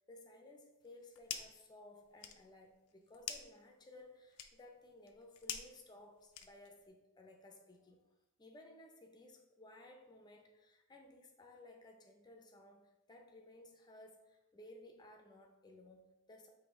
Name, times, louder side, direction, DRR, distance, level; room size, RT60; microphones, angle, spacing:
voice 1, 0.1-8.0 8.4-16.5, left 1 dB, 20° left, 3 dB, 0.5 m, -58 dB
sound 1, 0.8-1.7 2.0-6.9, left 9 dB, 70° left, 0.4 m, -48 dB
5.0 x 2.7 x 3.7 m, 0.97 s
head